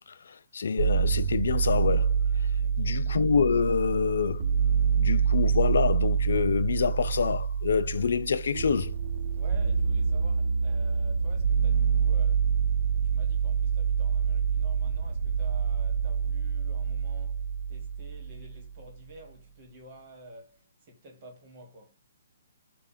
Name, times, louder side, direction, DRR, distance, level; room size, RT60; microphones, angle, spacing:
voice 1, 0.0-2.2 2.8-4.5 4.9-8.9, left 6 dB, 70° left, 0.3 m, -26 dB
sound 1, 0.8-18.7, right 6 dB, 60° right, 0.4 m, -26 dB
voice 2, 2.6-3.1 9.3-12.5 12.9-21.9, right 1 dB, 40° right, 1.6 m, -50 dB
3.4 x 2.4 x 4.2 m
hypercardioid pair, 145°, 0 cm